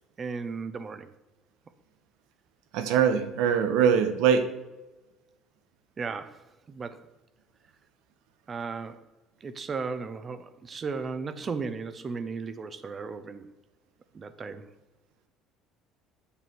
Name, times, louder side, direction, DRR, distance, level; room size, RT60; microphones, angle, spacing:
voice 1, 0.2-1.1 6.0-7.0 8.5-9.1 9.4-13.5 14.1-14.7, right 4 dB, 30° right, 12 dB, 0.7 m, -35 dB
voice 2, 2.7-4.4, right 7 dB, 80° right, 9 dB, 1.0 m, -22 dB
8.0 x 6.8 x 4.6 m, 1.1 s
cardioid pair, 125°, 0 cm